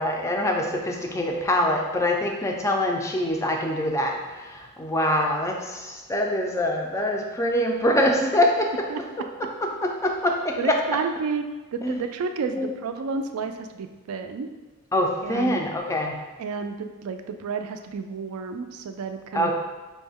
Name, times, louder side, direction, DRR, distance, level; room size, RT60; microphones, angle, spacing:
voice 1, 0.0-4.2 4.4-8.9 9.8-10.8 11.8-12.0 12.5-12.7 14.9-16.1 19.3-19.5, left 1 dB, 15° left, 1 dB, 0.4 m, -24 dB
voice 2, 8.9-9.3 10.6-11.4 11.7-14.5 15.2-15.6 16.4-19.5, right 5 dB, 70° right, 7 dB, 0.3 m, -31 dB
5.1 x 2.1 x 3.5 m, 1.2 s
head